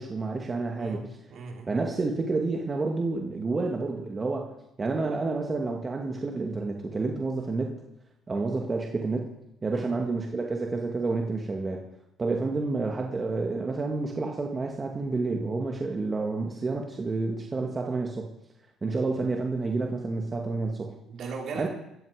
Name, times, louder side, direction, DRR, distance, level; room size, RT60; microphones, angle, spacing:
voice 1, 0.0-1.2 1.7-4.5 4.8-7.8 8.3-9.3 9.6-11.9 12.2-18.3 18.8-21.0 21.6-21.7, right 3 dB, 30° right, 1 dB, 2.2 m, -29 dB
voice 2, 0.8-1.7 9.7-9.9 21.1-21.7, right 4 dB, 60° right, 0 dB, 4.5 m, -38 dB
18.0 x 14.0 x 5.1 m, 0.85 s
supercardioid pair, 70°, 0 cm